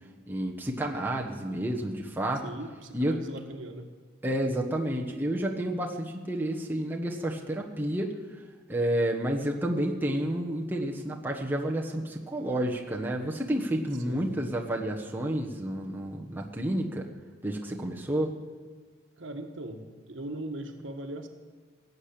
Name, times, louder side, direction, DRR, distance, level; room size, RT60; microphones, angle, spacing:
voice 1, 0.3-2.5 2.9-3.2 4.2-8.1 8.7-17.1 17.4-18.3, right 1 dB, 10° right, -1 dB, 1.2 m, -30 dB
voice 2, 2.4-3.9 14.0-14.5 19.2-21.3, right 1 dB, 65° right, 5 dB, 1.4 m, -40 dB
17.5 x 6.8 x 8.7 m, 1.4 s
head